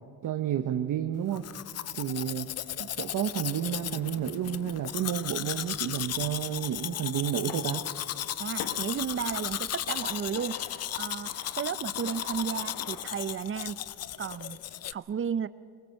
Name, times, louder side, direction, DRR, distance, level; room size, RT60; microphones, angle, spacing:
voice 1, 0.2-1.5 1.9-2.5 2.8-7.9, right 10 dB, 55° right, 6 dB, 1.1 m, -31 dB
Domestic sounds home sounds, 1.3-14.9, left 12 dB, 45° left, 0.5 m, -35 dB
sound 1, 3.5-13.1, left 7 dB, 80° left, 1.8 m, -48 dB
voice 2, 8.4-10.6 11.0-13.8 14.2-14.6 14.9-15.5, right 7 dB, 35° right, 15 dB, 0.7 m, -33 dB
23.0 x 21.5 x 6.6 m, 2.2 s
cardioid pair, 120°, 37 cm